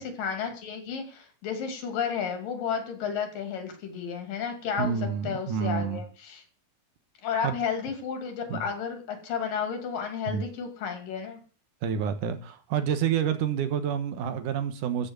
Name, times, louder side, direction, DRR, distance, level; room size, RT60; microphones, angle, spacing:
voice 1, 0.0-5.0 5.2-6.4 7.2-11.4, left 7 dB, 90° left, 4.3 m, -32 dB
voice 2, 4.8-6.0 7.4-7.6 8.5-8.6 10.3-10.4 11.8-15.1, right 8 dB, 75° right, 2.7 m, -28 dB
14.0 x 6.5 x 8.1 m
omnidirectional pair, 3.8 m